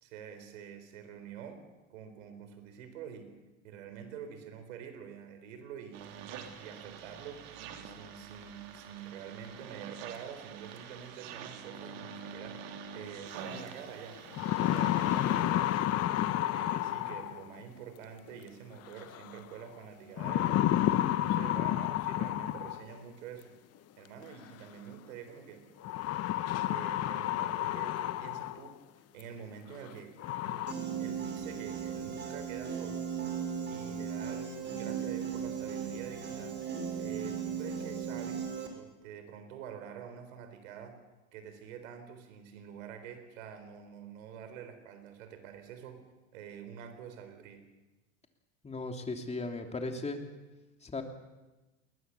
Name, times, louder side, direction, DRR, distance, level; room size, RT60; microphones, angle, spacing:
voice 1, 0.0-1.6 1.9-3.3 3.6-7.5 7.8-16.3 16.5-20.5 21.0-23.5 24.0-25.6 26.6-28.8 29.1-30.6 31.0-33.0 33.7-36.6 36.9-41.0 41.3-46.0 46.3-47.6, right 8 dB, 80° right, 9 dB, 4.0 m, -47 dB
sound 1, 5.9-15.4, right 7 dB, 60° right, 3.1 m, -46 dB
sound 2, 13.6-13.7 14.1-17.6 19.0-19.4 20.2-23.0 24.2-24.3 25.8-28.7 29.2-29.3 29.8-29.9 30.2-30.7, left 13 dB, 40° left, 1.0 m, -30 dB
Piano, 30.7-38.7, right 7 dB, 25° right, 4.9 m, -37 dB
voice 2, 48.6-50.2 50.8-51.0, left 2 dB, 15° left, 4 dB, 3.1 m, -36 dB
21.5 x 19.5 x 7.1 m, 1.1 s
hypercardioid pair, 100°, 39 cm